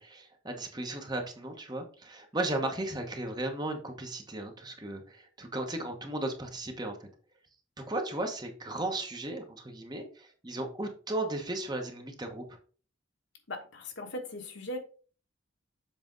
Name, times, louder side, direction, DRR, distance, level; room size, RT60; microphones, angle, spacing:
voice 1, 0.0-7.1 7.8-12.6, right 2 dB, 20° right, 4 dB, 1.0 m, -35 dB
voice 2, 13.5-14.8, left 1 dB, 60° left, 4 dB, 1.3 m, -39 dB
7.4 x 4.2 x 3.9 m, 0.41 s
head